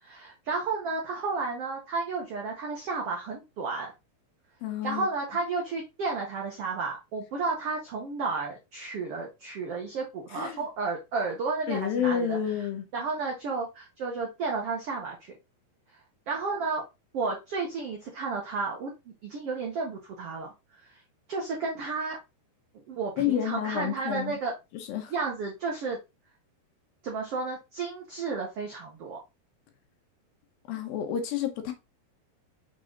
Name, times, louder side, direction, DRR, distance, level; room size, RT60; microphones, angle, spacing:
voice 1, 0.0-3.9 4.8-12.4 12.9-15.3 16.3-16.8 17.1-20.5 20.8-21.0 21.3-22.2 22.9-24.5 25.1-26.0 27.0-29.2, right 4 dB, 85° right, 1.3 m, -32 dB
voice 2, 4.6-5.1 10.3-10.6 11.7-12.9 23.2-24.4 24.7-25.1 30.7-31.7, left 9 dB, 75° left, 2.6 m, -29 dB
6.4 x 4.0 x 3.8 m
omnidirectional pair, 4.5 m